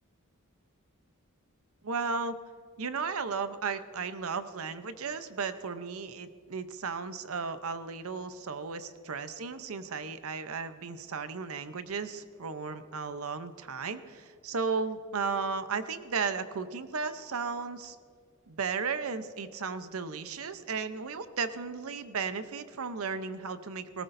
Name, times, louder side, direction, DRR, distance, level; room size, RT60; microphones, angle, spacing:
voice 1, 1.8-2.4 2.8-18.0 18.5-24.0, right 5 dB, 80° right, 11 dB, 0.8 m, -35 dB
19.5 x 18.5 x 2.7 m, 2.3 s
head